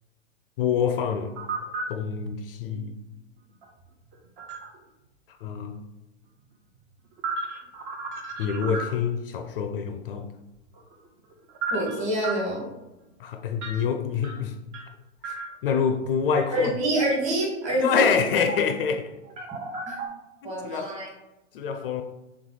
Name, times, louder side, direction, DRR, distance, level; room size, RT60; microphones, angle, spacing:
voice 1, 0.6-1.3 1.9-3.0 5.4-5.8 8.4-10.3 13.2-14.5 15.2-15.4 15.6-16.7 17.8-19.1 20.4-20.9 21.5-22.0, left 6 dB, 50° left, 7 dB, 0.4 m, -26 dB
sound 1, 1.2-1.9 3.6-4.8 6.7-9.2 10.6-12.4 13.6-13.8 14.2-14.9 15.2-15.8 16.4-16.5 18.4-18.8 19.1-20.1, right 4 dB, 40° right, 0.8 m, -34 dB
voice 2, 11.7-12.7 16.5-18.1 19.8-20.0 20.4-21.1, right 1 dB, 20° right, -3 dB, 1.4 m, -26 dB
3.5 x 3.2 x 3.9 m, 0.99 s
hypercardioid pair, 130°, 37 cm